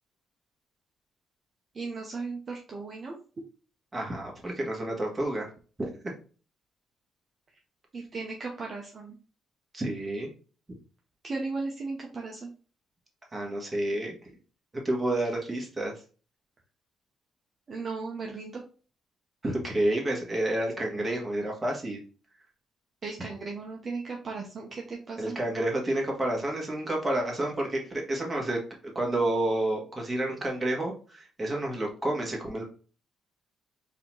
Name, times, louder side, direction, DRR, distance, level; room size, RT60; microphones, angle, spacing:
voice 1, 1.7-3.2 7.9-9.1 11.2-12.5 17.7-18.6 23.0-25.4, right 3 dB, 40° right, 0 dB, 0.8 m, -36 dB
voice 2, 3.9-5.5 5.8-6.1 9.7-10.3 13.3-14.3 14.7-15.9 19.4-22.0 25.2-28.6 28.9-32.6, right 1 dB, 20° right, -1 dB, 1.7 m, -30 dB
4.2 x 2.9 x 3.9 m, 0.38 s
cardioid pair, 90°, 0 cm